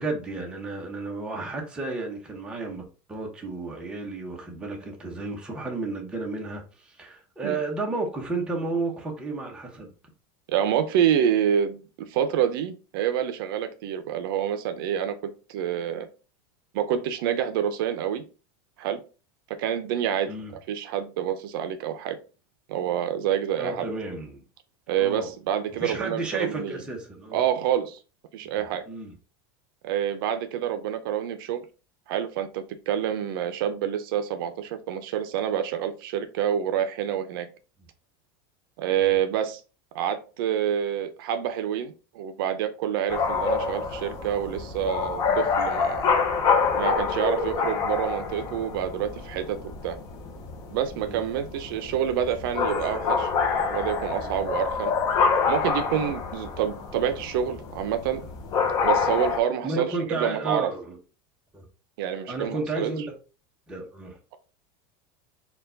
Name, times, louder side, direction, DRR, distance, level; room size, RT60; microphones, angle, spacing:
voice 1, 0.0-9.9 20.3-20.5 23.6-24.4 25.0-25.3 25.8-27.4 28.5-29.1 39.0-39.1 47.1-47.2 50.9-51.2 54.2-54.4 59.6-61.0 61.5-61.7 62.3-63.1 63.7-64.2, right 3 dB, 5° right, 0.7 m, -32 dB
voice 2, 10.5-16.1 16.7-18.2 18.8-19.0 19.5-20.3 20.7-22.2 22.7-23.8 24.9-26.8 27.3-28.0 28.3-28.8 29.8-31.6 32.1-37.5 38.8-39.6 39.9-46.1 46.8-49.6 49.8-50.0 50.7-53.3 53.7-54.9 55.5-58.2 58.8-60.7 62.0-62.9, right 9 dB, 65° right, 0.5 m, -27 dB
sound 1, 43.1-59.4, left 5 dB, 30° left, 0.6 m, -27 dB
4.5 x 2.3 x 3.8 m
supercardioid pair, 180°, 13 cm